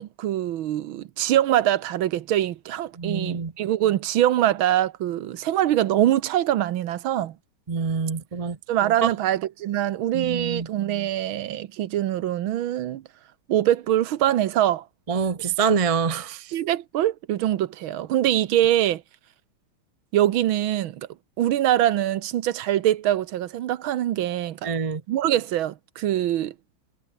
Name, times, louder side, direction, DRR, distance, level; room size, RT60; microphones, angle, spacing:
voice 1, 0.0-7.3 8.7-13.0 13.5-14.8 16.5-19.0 20.1-21.1 21.4-24.7 25.1-26.5, right 12 dB, 75° right, 1.7 m, -23 dB
voice 2, 3.0-3.5 7.7-8.6 9.0-9.1 10.1-10.7 15.1-16.5 24.6-25.0, right 6 dB, 35° right, 0.5 m, -25 dB
omnidirectional pair, 2.3 m